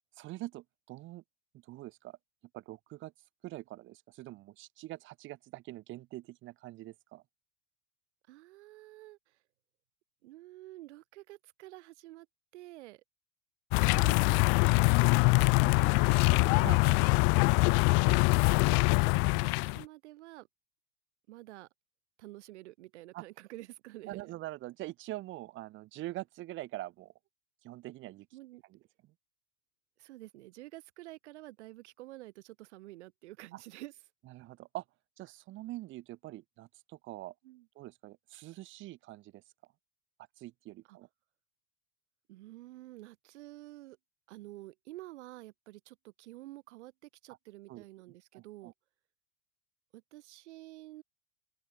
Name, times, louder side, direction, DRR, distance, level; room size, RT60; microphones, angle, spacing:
voice 1, 0.2-1.2 1.6-2.2 2.5-3.1 3.4-7.2 16.6-17.0 23.1-23.2 24.1-27.1 27.6-28.3 28.7-28.8 33.5-33.6 34.3-34.8 35.2-37.3 37.7-39.4 40.4-41.1 47.7-47.8 48.3-48.7, right 17 dB, 35° right, 5.2 m, -44 dB
voice 2, 8.3-9.4 10.2-12.3 12.5-13.0 13.9-14.9 15.3-16.2 16.4-16.7 18.0-18.8 19.2-20.5 21.3-21.7 22.2-24.3 28.3-28.6 30.0-34.0 37.4-37.7 40.9-41.0 42.3-44.0 44.3-48.7 49.9-51.0, right 17 dB, 75° right, 5.0 m, -49 dB
sound 1, 13.7-19.8, left 36 dB, 35° left, 0.5 m, -24 dB
open air
supercardioid pair, 170°, 35 cm